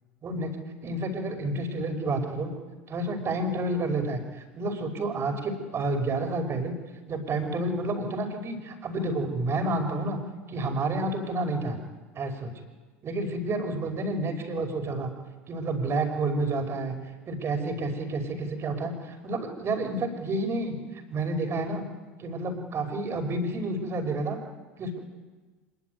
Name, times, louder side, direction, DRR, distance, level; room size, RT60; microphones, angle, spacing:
voice 1, 0.8-2.5 2.9-6.7 7.1-10.2 10.5-11.8 12.2-12.5 13.0-15.1 15.5-16.9 17.3-20.8 21.1-21.9 22.2-24.4 24.8-25.0, right 2 dB, 35° right, 6 dB, 5.6 m, -29 dB
25.0 x 22.0 x 9.4 m, 1.3 s
hypercardioid pair, 75°, 7 cm